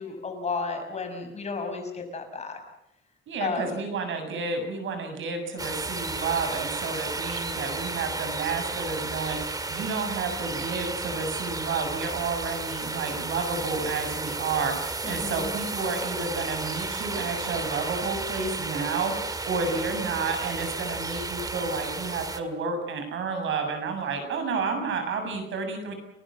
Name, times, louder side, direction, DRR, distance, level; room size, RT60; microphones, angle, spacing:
voice 1, 0.0-2.6 3.4-3.8 15.0-15.5, left 4 dB, 35° left, 5 dB, 6.1 m, -33 dB
voice 2, 3.3-25.9, right 4 dB, 75° right, 6 dB, 7.3 m, -31 dB
sound 1, 5.6-22.4, right 3 dB, 20° right, 1.9 m, -33 dB
30.0 x 20.0 x 7.6 m, 0.82 s
cardioid pair, 150°, 20 cm